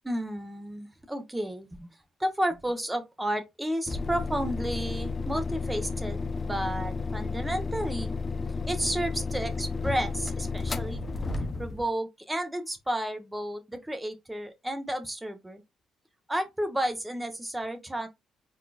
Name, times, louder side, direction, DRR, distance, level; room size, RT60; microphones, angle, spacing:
voice 1, 0.0-1.9 2.2-8.1 8.7-11.0 11.6-15.6 16.3-18.1, right 1 dB, 10° right, 1.3 m, -32 dB
sound 1, 3.9-11.9, left 4 dB, 30° left, 0.9 m, -32 dB
4.3 x 4.2 x 2.5 m
cardioid pair, 90°, 0 cm